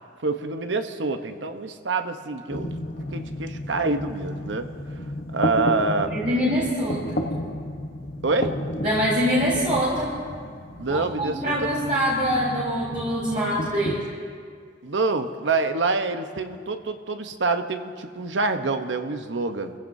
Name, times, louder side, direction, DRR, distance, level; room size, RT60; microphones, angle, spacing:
voice 1, 0.2-2.8 3.1-4.7 5.3-6.1 8.2-8.6 10.8-11.7 14.8-19.7, right 3 dB, 85° right, 7 dB, 0.9 m, -26 dB
sound 1, 2.5-14.0, left 1 dB, 55° left, 1.0 m, -32 dB
voice 2, 6.1-7.2 8.8-10.1 10.9-14.0, equal, 45° right, -8 dB, 3.1 m, -24 dB
29.0 x 15.5 x 2.7 m, 2.1 s
head